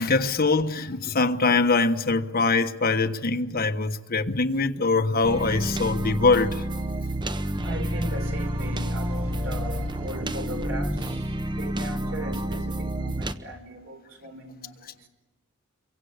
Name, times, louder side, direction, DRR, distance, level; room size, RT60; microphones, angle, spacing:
voice 1, 0.0-6.6, left 3 dB, 45° left, 1.4 m, -23 dB
sound 1, 5.2-13.3, right 1 dB, 20° right, 1.0 m, -29 dB
voice 2, 7.0-15.1, right 1 dB, 70° right, 4.8 m, -38 dB
28.0 x 23.5 x 8.2 m
head